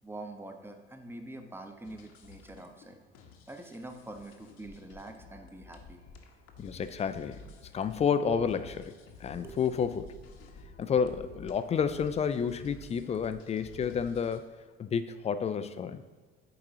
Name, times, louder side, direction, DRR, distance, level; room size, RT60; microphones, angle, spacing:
voice 1, 0.0-3.0 3.5-6.0 9.3-9.6 10.6-10.7, right 2 dB, 5° right, 5 dB, 0.9 m, -45 dB
sound 1, 1.8-14.4, left 3 dB, 50° left, 1.0 m, -52 dB
voice 2, 6.6-7.4 7.7-8.9 9.2-10.1 10.8-14.5 14.8-16.0, left 6 dB, 20° left, 11 dB, 0.4 m, -30 dB
12.0 x 4.8 x 2.8 m, 1.5 s
figure-of-eight pair, 55°, 32 cm